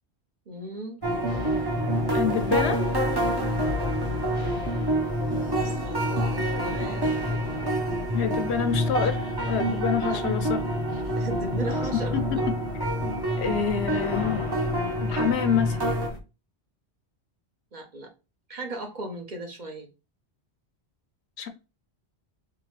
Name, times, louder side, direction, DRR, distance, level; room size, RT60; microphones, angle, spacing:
voice 1, 0.5-1.0 5.5-7.3 9.0-9.1 10.0-10.2 11.1-12.4 17.7-18.1 18.5-19.9, right 2 dB, 45° right, 1.0 m, -37 dB
sound 1, 1.0-16.2, left 4 dB, 30° left, 0.7 m, -37 dB
sound 2, 1.0-16.1, right 1 dB, 25° right, 0.6 m, -27 dB
voice 2, 2.1-2.8 8.1-9.2 9.5-10.6 10.9-11.0 12.1-12.2 13.1-14.4 15.0-15.8 21.4-21.5, left 7 dB, 80° left, 1.0 m, -27 dB
3.7 x 3.1 x 3.0 m
omnidirectional pair, 1.1 m